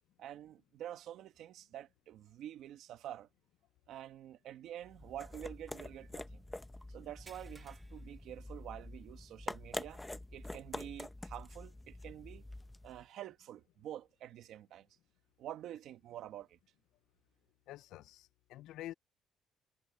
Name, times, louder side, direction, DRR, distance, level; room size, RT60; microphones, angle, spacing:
voice 1, 0.2-3.3 3.9-6.4 6.9-10.0 10.3-12.4 12.8-14.9 15.4-16.6, right 11 dB, 70° right, 1.8 m, -48 dB
sound 1, 4.8-13.0, left 1 dB, 10° left, 1.1 m, -46 dB
sound 2, 7.3-9.1 9.5-9.7 10.2-10.3 11.9-12.0, right 3 dB, 20° right, 2.3 m, -61 dB
voice 2, 17.7-18.9, left 14 dB, 80° left, 0.5 m, -48 dB
cardioid pair, 120°, 0 cm